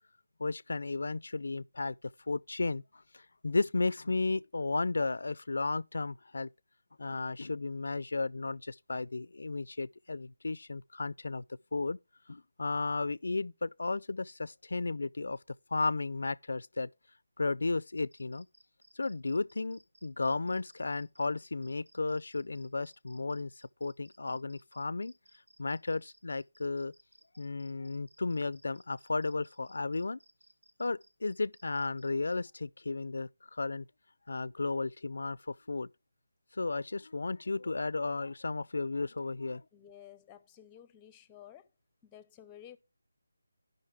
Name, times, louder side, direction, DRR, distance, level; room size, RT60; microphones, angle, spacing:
voice 1, 0.4-2.0 2.3-6.5 7.0-11.4 11.7-12.0 12.3-15.4 15.7-16.9 17.4-18.5 18.9-23.5 23.8-25.1 25.6-26.9 27.4-30.2 30.8-33.9 34.3-35.9 36.5-39.6, left 3 dB, 70° left, 0.4 m, -34 dB
sound 1, 17.9-32.4, right 1 dB, 85° right, 1.9 m, -64 dB
voice 2, 39.7-41.7 42.0-42.8, left 10 dB, 10° left, 0.6 m, -53 dB
14.0 x 5.5 x 3.4 m
figure-of-eight pair, 165°, 0 cm